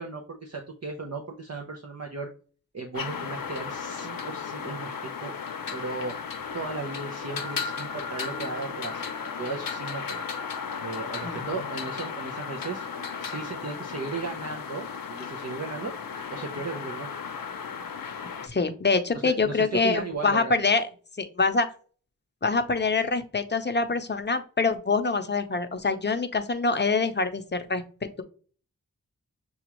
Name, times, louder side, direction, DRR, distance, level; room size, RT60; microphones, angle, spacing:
voice 1, 0.0-2.3 2.7-5.3 5.7-6.1 6.5-10.2 10.8-12.8 13.2-15.9 16.3-17.1 19.2-20.6, right 4 dB, 50° right, 1 dB, 0.7 m, -36 dB
sound 1, 2.9-18.5, left 6 dB, 85° left, 0.6 m, -35 dB
voice 2, 18.4-20.9 21.2-21.7 22.4-27.8, left 4 dB, 30° left, 7 dB, 0.7 m, -25 dB
6.9 x 2.4 x 2.9 m, 0.40 s
wide cardioid pair, 65°, 33 cm